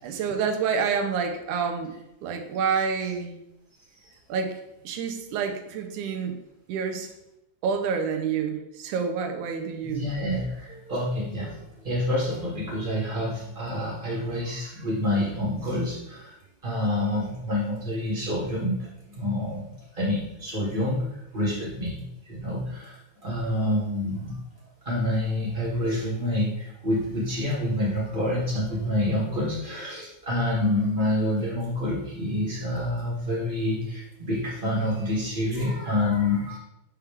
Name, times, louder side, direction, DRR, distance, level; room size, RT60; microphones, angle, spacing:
voice 1, 0.0-1.9 2.2-3.4 4.3-4.6 4.8-6.4 6.7-7.1 7.6-10.1, right 6 dB, 85° right, 5 dB, 2.3 m, -28 dB
voice 2, 9.8-16.3 16.6-18.9 19.2-19.6 19.9-21.0 21.3-24.4 24.9-36.6, left 1 dB, 15° right, -7 dB, 2.3 m, -27 dB
8.6 x 4.6 x 3.5 m, 0.89 s
omnidirectional pair, 3.4 m